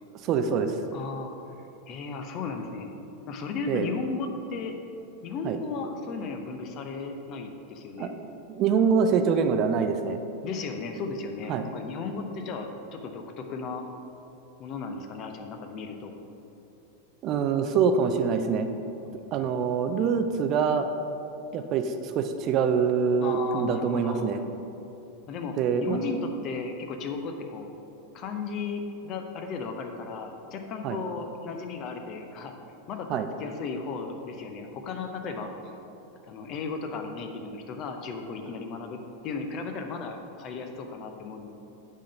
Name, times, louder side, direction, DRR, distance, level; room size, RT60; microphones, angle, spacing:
voice 1, 0.2-0.8 3.7-3.9 5.4-5.6 8.0-10.2 11.5-11.7 17.2-18.7 19.3-20.9 21.5-24.4 25.6-26.0 30.8-31.0 33.1-33.3, right 6 dB, 35° right, 7 dB, 0.4 m, -25 dB
voice 2, 0.9-2.9 3.3-4.7 5.2-8.1 10.4-13.8 14.6-16.2 19.1-19.5 23.2-24.4 25.3-27.7 28.1-32.5 32.9-33.1 33.4-35.5 36.2-41.5, left 4 dB, 35° left, 5 dB, 0.7 m, -35 dB
8.5 x 3.8 x 5.2 m, 2.8 s
figure-of-eight pair, 90°, 0 cm